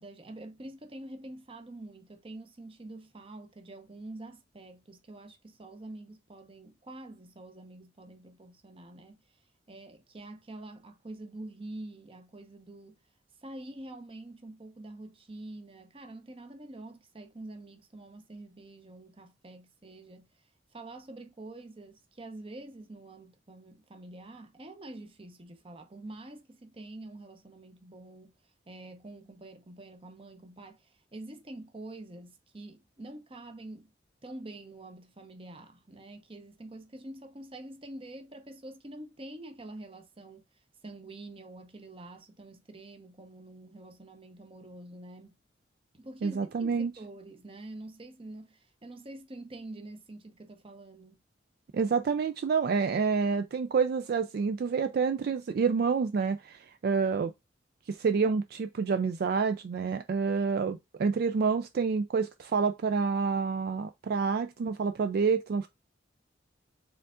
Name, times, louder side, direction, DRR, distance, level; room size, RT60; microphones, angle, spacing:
voice 1, 0.0-9.4 9.7-13.0 13.4-20.5 20.7-28.4 28.7-33.9 34.2-40.5 40.8-45.4 45.9-51.2, right 2 dB, 30° right, 0.7 m, -46 dB
voice 2, 46.2-46.9 51.7-57.3 57.9-65.7, right 5 dB, 55° right, 0.3 m, -28 dB
4.5 x 3.7 x 2.4 m
head